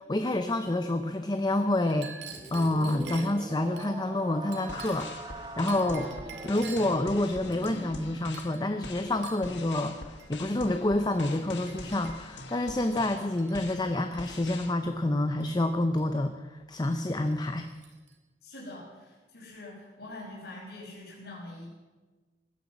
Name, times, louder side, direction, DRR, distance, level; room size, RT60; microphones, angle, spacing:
voice 1, 0.1-2.2 2.5-6.1 6.4-17.7, left 1 dB, 25° left, 8 dB, 0.7 m, -28 dB
Chink clink, 1.8-3.9 4.5-5.2 5.7-7.0 7.5-8.0 8.3-8.6 9.2-9.5 10.2-10.4 11.1-11.3 11.7-12.4 13.1-13.7 14.0-14.4 15.4-16.1 16.8-17.0 17.3-18.2, right 6 dB, 75° right, 2.4 m, -48 dB
sound 1, 2.3-8.2, right 2 dB, 25° right, 1.0 m, -42 dB
sound 2, 4.6-14.7, left 3 dB, 85° left, 1.5 m, -44 dB
voice 2, 18.4-21.7, left 2 dB, 65° left, -5 dB, 6.0 m, -44 dB
18.5 x 10.5 x 7.2 m, 1.3 s
head